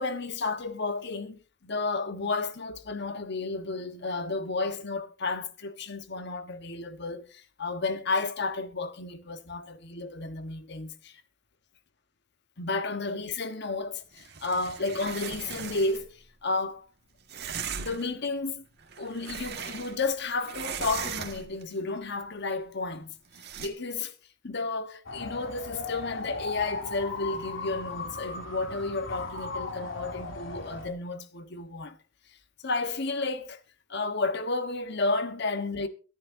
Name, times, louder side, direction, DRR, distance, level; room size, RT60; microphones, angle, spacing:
voice 1, 0.0-11.2 12.6-16.9 17.8-18.7 19.0-23.1 23.6-24.1 24.4-32.0 32.6-33.6 33.9-35.9, left 3 dB, 60° left, 1.2 m, -32 dB
sound 1, 14.2-16.1 17.3-18.1 18.8-20.1 20.4-21.6 23.3-23.7, right 7 dB, 55° right, 1.8 m, -38 dB
sound 2, 25.0-30.9, left 3 dB, 80° left, 2.8 m, -37 dB
23.0 x 11.0 x 2.7 m
head